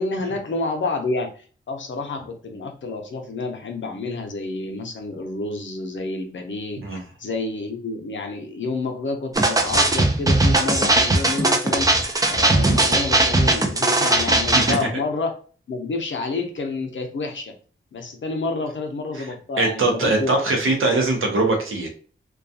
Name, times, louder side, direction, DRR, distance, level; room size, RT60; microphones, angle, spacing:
voice 1, 0.0-11.9 12.3-15.3 15.7-17.5 17.9-20.6, left 3 dB, 65° left, 4 dB, 0.6 m, -29 dB
sound 1, 9.3-14.8, right 2 dB, 15° right, 0.5 m, -19 dB
voice 2, 19.6-21.9, right 2 dB, 85° right, 2 dB, 0.8 m, -21 dB
2.3 x 2.2 x 2.7 m, 0.41 s
cardioid pair, 60°, 21 cm